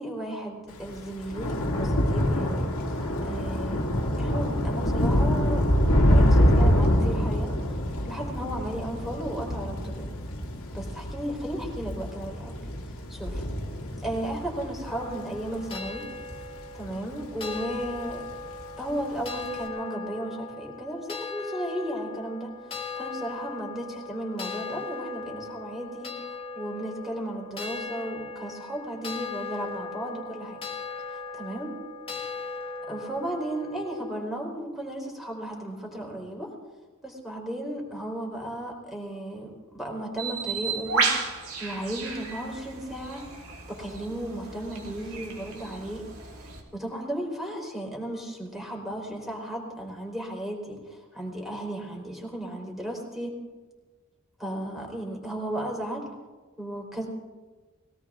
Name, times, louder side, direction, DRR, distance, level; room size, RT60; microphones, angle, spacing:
voice 1, 0.0-2.6 3.2-7.8 8.0-10.1 10.7-12.5 13.1-13.4 14.0-16.0 16.7-18.2 18.8-30.6 31.3-31.7 32.9-36.5 37.0-41.1 41.6-43.3 43.7-46.1 46.4-53.3 54.4-56.1 56.6-57.1, right 1 dB, ahead, -1 dB, 3.8 m, -35 dB
Thunder / Rain, 0.8-17.4 17.7-18.2 18.4-18.6, equal, 75° left, 2.3 m, -25 dB
sound 1, 14.8-34.2, left 4 dB, 25° left, 2.0 m, -38 dB
Bird, 40.2-46.6, right 4 dB, 90° right, 3.2 m, -33 dB
21.5 x 17.5 x 3.6 m, 1.3 s
head